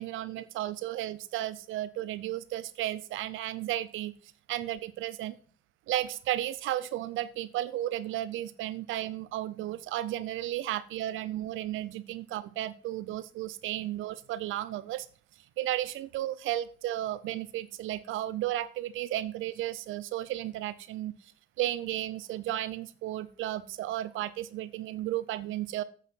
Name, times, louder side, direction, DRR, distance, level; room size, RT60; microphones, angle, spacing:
voice 1, 0.0-4.1 4.5-5.4 5.9-15.1 15.6-21.3 21.6-25.8, right 14 dB, 85° right, 16 dB, 0.6 m, -34 dB
8.3 x 5.8 x 7.6 m, 0.43 s
cardioid pair, 90°, 20 cm